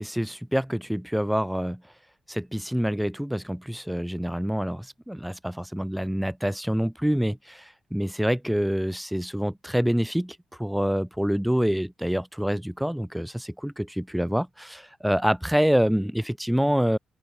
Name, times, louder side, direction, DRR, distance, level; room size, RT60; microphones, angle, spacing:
voice 1, 0.0-1.8 2.3-17.0, equal, ahead, 0.7 m, -26 dB
open air
cardioid pair, 90°, 0 cm